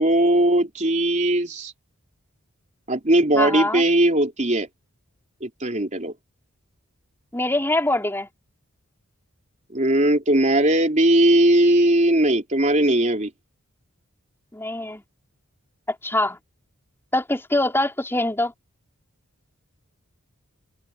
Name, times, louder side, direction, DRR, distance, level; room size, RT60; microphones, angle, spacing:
voice 1, 0.0-1.7 2.9-4.7 5.4-6.1 9.7-13.3, right 1 dB, 35° right, 3.6 m, -19 dB
voice 2, 3.4-3.8 7.3-8.3 14.5-15.0 16.0-16.4 17.1-18.5, left 1 dB, 10° left, 4.8 m, -23 dB
open air
head